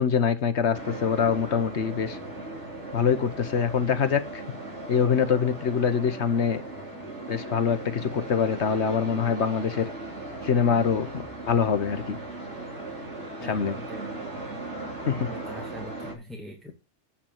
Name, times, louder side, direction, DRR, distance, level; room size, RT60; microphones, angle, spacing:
voice 1, 0.0-2.2 2.9-4.4 4.9-6.6 7.3-9.9 10.4-12.2 13.4-13.8 15.0-15.3, left 7 dB, 70° left, 1.3 m, -24 dB
sound 1, 0.7-16.1, right 2 dB, 70° right, 3.7 m, -38 dB
voice 2, 13.4-14.1 15.2-16.7, equal, ahead, 2.1 m, -42 dB
8.4 x 5.8 x 7.2 m
omnidirectional pair, 1.2 m